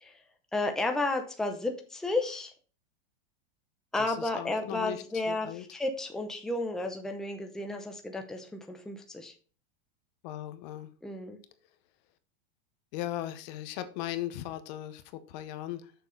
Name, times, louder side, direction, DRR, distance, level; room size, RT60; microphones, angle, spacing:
voice 1, 0.5-2.5 3.9-9.3 11.0-11.4, left 2 dB, ahead, 4 dB, 0.8 m, -32 dB
voice 2, 4.0-5.6 10.2-10.9 12.9-15.9, left 13 dB, 45° left, 11 dB, 1.0 m, -38 dB
7.1 x 6.8 x 4.0 m, 0.38 s
supercardioid pair, 160°, 29 cm